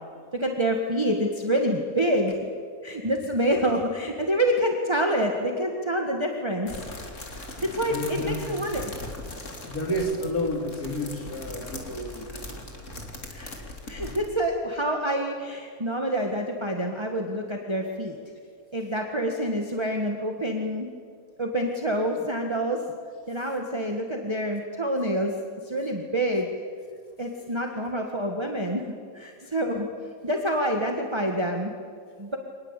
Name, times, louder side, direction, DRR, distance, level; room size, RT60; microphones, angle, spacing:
voice 1, 0.3-2.4 2.8-6.7 7.3-8.0 8.2-8.9 13.3-13.5 13.9-18.2 18.7-20.9 21.4-22.8 23.3-25.3 25.6-26.5 27.2-28.8 29.1-29.9 30.2-31.7 32.2-32.4, right 1 dB, 20° right, 2 dB, 1.7 m, -27 dB
sound 1, 6.7-14.3, left 2 dB, 55° left, 3.2 m, -39 dB
voice 2, 7.9-8.7 9.6-12.3, equal, 85° left, 3 dB, 3.4 m, -30 dB
25.5 x 19.5 x 8.4 m, 2.2 s
omnidirectional pair, 1.5 m